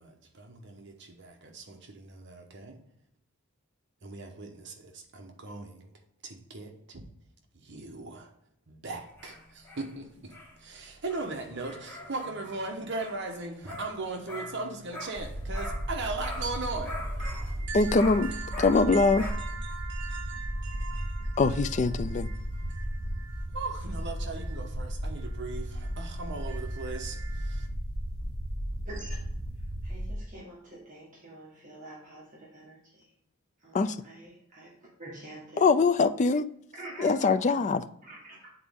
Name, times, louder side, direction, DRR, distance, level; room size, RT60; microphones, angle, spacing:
voice 1, 0.0-2.8 4.0-5.9 6.2-7.0 7.5-8.3 8.7-27.7, right 3 dB, 55° right, 1.0 m, -39 dB
sound 1, 8.9-19.3, left 1 dB, 10° left, 2.1 m, -44 dB
sound 2, 15.1-30.2, equal, 70° left, 1.6 m, -35 dB
voice 2, 17.7-18.3 18.6-19.2 21.4-22.3 33.7-34.0 35.6-36.5 37.0-37.8, left 4 dB, 35° left, 0.3 m, -23 dB
voice 3, 29.8-33.1 33.6-34.7 35.0-35.7 36.7-37.1 37.4-37.5 38.0-38.5, right 2 dB, 35° right, 1.5 m, -46 dB
8.5 x 4.1 x 3.6 m
head